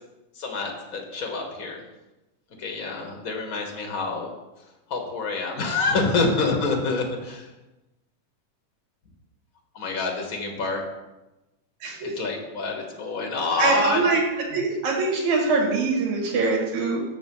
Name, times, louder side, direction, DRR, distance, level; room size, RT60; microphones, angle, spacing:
voice 1, 0.4-1.8 2.6-4.3 4.9-7.4 9.7-10.8 12.0-14.1, left 3 dB, 80° left, 2 dB, 0.7 m, -27 dB
voice 2, 13.6-14.2 14.5-17.0, right 4 dB, 70° right, -1 dB, 3.3 m, -23 dB
6.7 x 5.9 x 7.0 m, 1.0 s
omnidirectional pair, 3.5 m